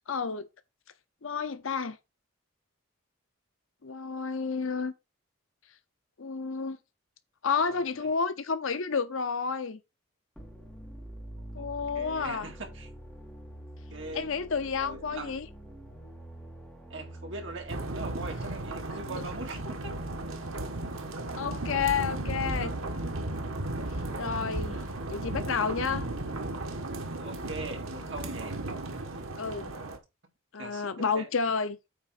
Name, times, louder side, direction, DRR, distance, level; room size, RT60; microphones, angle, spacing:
voice 1, 0.1-0.5 1.2-2.0 3.8-4.9 6.2-6.8 7.4-9.8 11.5-12.5 14.1-15.5 19.0-19.2 21.4-22.7 24.2-24.8 25.1-26.0 29.4-29.7 30.5-31.8, left 5 dB, 75° left, 0.7 m, -30 dB
voice 2, 7.7-8.1 11.6-11.7 11.9-12.9 13.9-14.3 14.6-15.4 16.9-19.9 22.3-23.0 27.2-28.6 30.6-30.9 31.2-31.3, right 2 dB, 60° right, 2.3 m, -41 dB
sound 1, 10.3-17.7, right 1 dB, 5° left, 2.3 m, -46 dB
sound 2, 17.7-30.0, right 2 dB, 85° right, 1.6 m, -35 dB
8.7 x 3.7 x 5.9 m
head